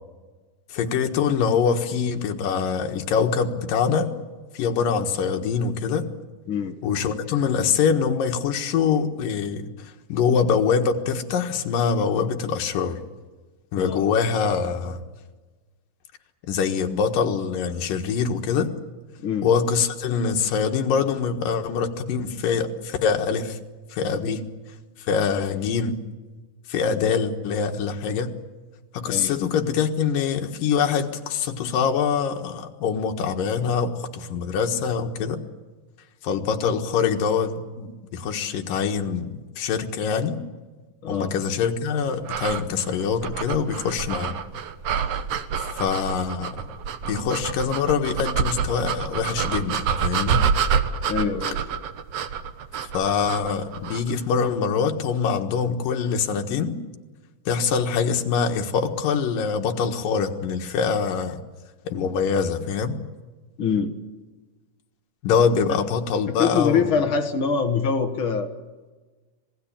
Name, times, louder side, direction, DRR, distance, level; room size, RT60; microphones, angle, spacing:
voice 1, 0.7-4.1 4.5-6.1 6.8-13.0 13.7-15.0 16.5-18.7 19.4-23.6 23.9-24.4 25.1-26.0 26.7-28.3 28.9-35.4 36.2-40.4 41.1-44.3 45.7-46.5 47.1-50.4 52.9-56.8 57.5-61.4 61.8-63.0 65.2-66.9, left 6 dB, 70° left, 4 dB, 3.1 m, -24 dB
voice 2, 6.5-6.8 13.8-14.0 19.2-19.5 29.1-29.4 41.0-41.3 51.1-51.6 63.6-63.9 66.4-68.5, left 6 dB, 55° left, 6 dB, 1.5 m, -24 dB
sound 1, 42.2-54.1, right 7 dB, 65° right, 1.6 m, -27 dB
26.0 x 19.0 x 8.9 m, 1.3 s
omnidirectional pair, 4.2 m